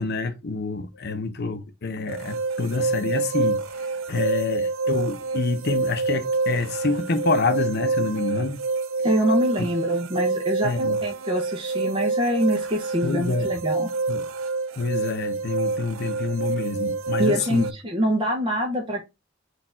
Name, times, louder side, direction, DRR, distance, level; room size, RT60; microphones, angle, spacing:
voice 1, 0.0-8.6 10.6-11.0 13.0-13.5 14.1-14.3 14.7-17.7, left 3 dB, 55° left, 0.7 m, -27 dB
sound 1, 2.1-17.7, right 3 dB, 85° right, 0.4 m, -27 dB
voice 2, 9.0-13.9 17.2-19.1, equal, 25° right, 0.7 m, -25 dB
4.3 x 2.5 x 4.4 m
head